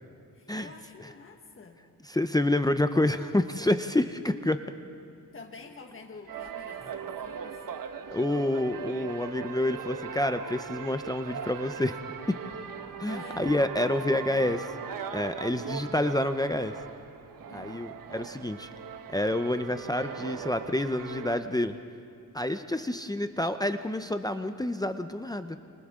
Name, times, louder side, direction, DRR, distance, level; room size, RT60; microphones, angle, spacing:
voice 1, 0.3-1.8 5.3-7.6 13.1-13.5 15.4-15.5 17.5-17.9, left 4 dB, 35° left, 4 dB, 1.6 m, -48 dB
voice 2, 2.0-4.6 8.1-12.0 13.0-14.7 15.1-16.7 17.5-18.7 19.1-21.8 22.3-25.6, left 1 dB, 10° left, 8 dB, 0.6 m, -28 dB
sound 1, 6.3-21.4, right 7 dB, 70° right, 1.2 m, -39 dB
29.0 x 27.0 x 3.7 m, 2.5 s
cardioid pair, 90°, 34 cm